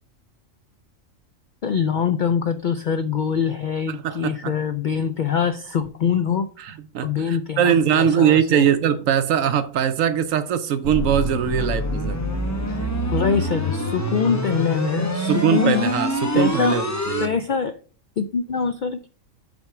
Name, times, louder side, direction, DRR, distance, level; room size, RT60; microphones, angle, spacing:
voice 1, 1.6-6.5 7.0-8.7 11.6-11.7 12.7-15.9 16.3-16.8 17.2-17.8 18.2-19.1, left 6 dB, 70° left, 0.4 m, -24 dB
voice 2, 3.9-4.5 6.6-12.2 15.3-17.3, right 8 dB, 80° right, 1.0 m, -21 dB
sound 1, 10.8-17.3, equal, 15° left, 0.8 m, -25 dB
7.8 x 4.3 x 5.8 m
omnidirectional pair, 1.4 m